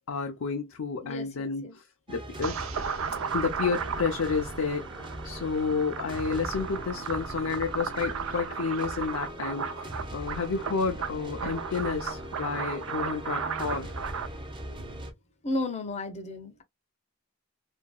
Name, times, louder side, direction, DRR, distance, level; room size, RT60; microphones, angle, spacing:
voice 1, 0.1-2.6 3.3-13.9, left 5 dB, 85° left, 0.5 m, -31 dB
voice 2, 1.0-1.8 15.4-16.6, left 2 dB, 35° left, 0.6 m, -34 dB
sound 1, 2.1-15.1, equal, 25° right, 0.6 m, -40 dB
sound 2, 2.4-14.3, right 6 dB, 90° right, 0.5 m, -35 dB
2.8 x 2.6 x 2.2 m
head